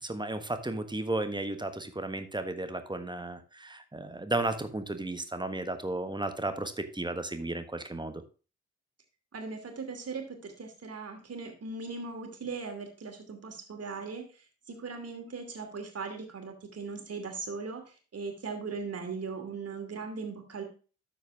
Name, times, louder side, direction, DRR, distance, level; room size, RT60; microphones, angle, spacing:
voice 1, 0.0-8.2, right 2 dB, 15° right, 8 dB, 1.4 m, -34 dB
voice 2, 9.3-14.2 14.7-20.6, right 4 dB, 45° right, 4 dB, 2.7 m, -39 dB
12.5 x 4.7 x 3.5 m, 0.35 s
hypercardioid pair, 40°, 33 cm